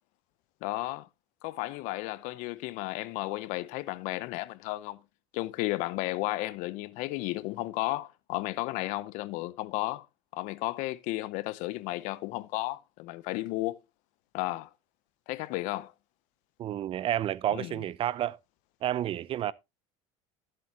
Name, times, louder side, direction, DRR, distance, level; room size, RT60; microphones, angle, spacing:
voice 1, 0.6-1.1 1.4-5.0 5.3-10.1 10.3-13.8 14.3-14.7 15.3-15.9 17.5-17.7, left 19 dB, 70° left, 0.6 m, -33 dB
voice 2, 16.6-18.4 18.8-19.5, right 12 dB, 45° right, 0.5 m, -30 dB
13.5 x 7.6 x 2.8 m
supercardioid pair, 115°, 14 cm